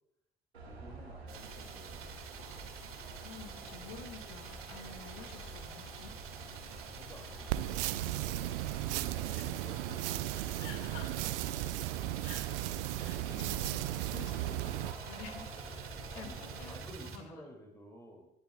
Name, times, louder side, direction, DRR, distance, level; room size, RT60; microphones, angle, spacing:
sound 1, 0.5-16.9, right 2 dB, 85° right, 1.6 m, -49 dB
voice 1, 0.6-3.1 6.8-10.7 14.5-14.8 15.9-16.4 16.7-18.3, equal, 10° left, 1 dB, 2.3 m, -55 dB
sound 2, 1.3-17.2, right 6 dB, 45° right, 2.0 m, -48 dB
voice 2, 3.2-6.1 8.6-9.0 9.3-9.5 10.1-11.3 12.2-12.6 12.9-15.5 15.9-17.5, left 6 dB, 60° left, 7 dB, 1.9 m, -50 dB
sound 3, 7.5-14.9, right 16 dB, 65° right, 0.5 m, -35 dB
20.0 x 13.0 x 2.3 m, 0.82 s
figure-of-eight pair, 55°, 31 cm